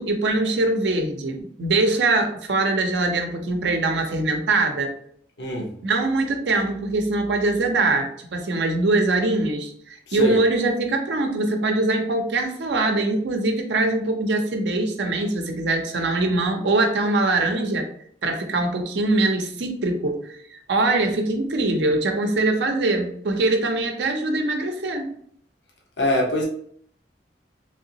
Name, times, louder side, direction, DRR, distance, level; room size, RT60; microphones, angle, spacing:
voice 1, 0.0-4.9 5.8-17.9 18.2-25.1, right 2 dB, 75° right, 4 dB, 0.6 m, -23 dB
voice 2, 5.4-5.7 10.1-10.4 26.0-26.4, left 1 dB, 80° left, -1 dB, 0.8 m, -23 dB
3.3 x 2.8 x 2.7 m, 0.64 s
head